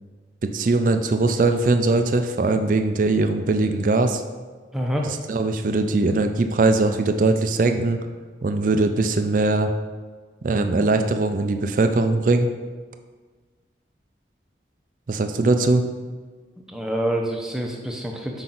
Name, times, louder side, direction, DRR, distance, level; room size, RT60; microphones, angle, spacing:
voice 1, 0.4-4.2 5.3-8.0 8.4-9.7 10.4-12.5 15.1-15.9, right 3 dB, 45° right, 7 dB, 0.4 m, -20 dB
voice 2, 4.7-5.1 16.7-18.4, right 1 dB, 5° right, 0 dB, 0.6 m, -26 dB
5.8 x 4.8 x 3.9 m, 1.5 s
head